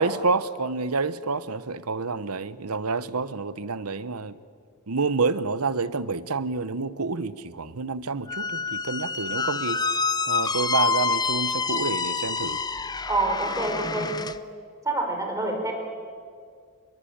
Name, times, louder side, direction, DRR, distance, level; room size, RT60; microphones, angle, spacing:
voice 1, 0.0-4.4 4.9-9.8 10.3-12.6, right 4 dB, 85° right, 1.0 m, -28 dB
Squeak, 8.3-14.4, left 4 dB, 20° left, 0.7 m, -27 dB
voice 2, 13.1-14.2 14.8-15.7, right 2 dB, 15° right, 4.8 m, -26 dB
28.0 x 22.0 x 8.8 m
head